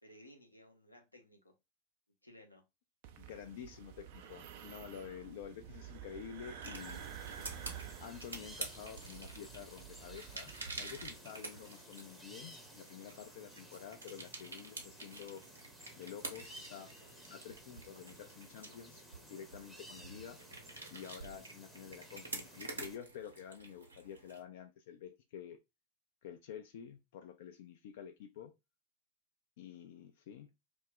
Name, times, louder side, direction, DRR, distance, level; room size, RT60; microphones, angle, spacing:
voice 1, 0.0-1.5 2.2-2.6, equal, 85° left, 0.7 m, -58 dB
sound 1, 3.0-11.2, right 9 dB, 50° right, 0.4 m, -50 dB
voice 2, 3.2-7.0 8.0-15.4 16.0-16.9 17.3-19.0 19.3-20.4 20.9-25.6 26.2-28.5 29.6-30.5, left 8 dB, 55° left, 0.3 m, -49 dB
sound 2, 6.6-24.4, right 2 dB, 75° right, 0.8 m, -49 dB
sound 3, 6.7-23.0, equal, 5° right, 0.7 m, -56 dB
2.3 x 2.1 x 3.9 m
figure-of-eight pair, 90°, 0 cm